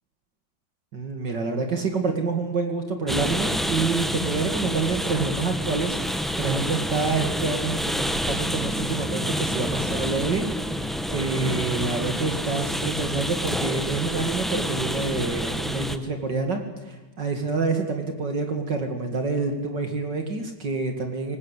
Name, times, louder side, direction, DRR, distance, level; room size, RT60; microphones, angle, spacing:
voice 1, 0.9-10.5 10.8-16.6 16.9-21.4, right 4 dB, 55° right, 5 dB, 2.8 m, -27 dB
sound 1, 3.1-16.0, equal, ahead, 0.6 m, -28 dB
25.5 x 20.0 x 8.2 m, 1.2 s
omnidirectional pair, 2.2 m